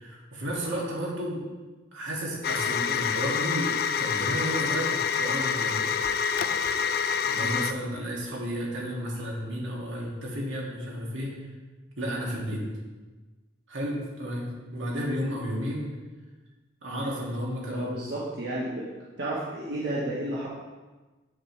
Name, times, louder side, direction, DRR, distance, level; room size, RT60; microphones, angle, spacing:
voice 1, 0.0-1.5 1.9-5.8 7.3-11.4 12.0-12.7 13.7-15.9 16.8-17.9, equal, 80° right, -3 dB, 2.2 m, -32 dB
sound 1, 2.4-7.7, left 6 dB, 50° left, 0.3 m, -27 dB
voice 2, 17.7-18.9 19.2-20.5, right 1 dB, 60° right, -7 dB, 1.2 m, -32 dB
8.7 x 6.6 x 3.2 m, 1.2 s
head